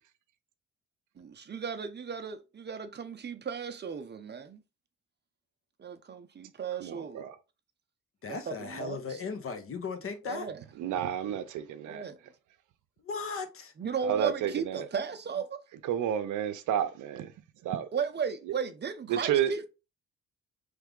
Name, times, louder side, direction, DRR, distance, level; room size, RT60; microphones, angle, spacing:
voice 1, 1.2-4.6 5.8-7.3 8.5-9.0 10.3-10.6 11.8-12.2 13.8-15.6 17.9-19.7, right 6 dB, 35° right, 0.7 m, -35 dB
voice 2, 6.8-7.3 10.8-12.0 14.0-14.9 15.8-17.3 17.6-17.9 19.1-19.5, right 10 dB, 80° right, 0.6 m, -30 dB
voice 3, 8.2-10.5 13.0-13.7, left 4 dB, 45° left, 1.0 m, -37 dB
3.5 x 3.3 x 3.6 m
cardioid pair, 90°, 30 cm